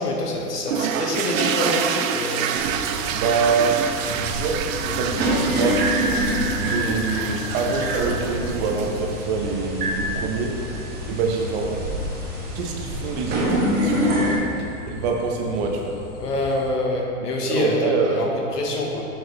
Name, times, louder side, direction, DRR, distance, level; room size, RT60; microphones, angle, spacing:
voice 1, 0.0-1.8 2.1-2.5 14.1-14.3 16.2-19.1, left 2 dB, 85° left, -1 dB, 1.6 m, -26 dB
sound 1, 0.7-9.1, right 8 dB, 60° right, 0.6 m, -27 dB
sound 2, 2.6-14.3, right 1 dB, 20° right, 1.7 m, -27 dB
voice 2, 3.1-3.7 4.1-5.8 6.6-10.5 11.1-11.8 12.5-14.1 14.9-15.9 17.2-18.3, right 4 dB, 45° right, 1 dB, 1.1 m, -25 dB
sound 3, 3.9-16.7, left 5 dB, 20° left, 0.4 m, -37 dB
7.5 x 6.5 x 3.4 m, 2.6 s
hypercardioid pair, 125°, 46 cm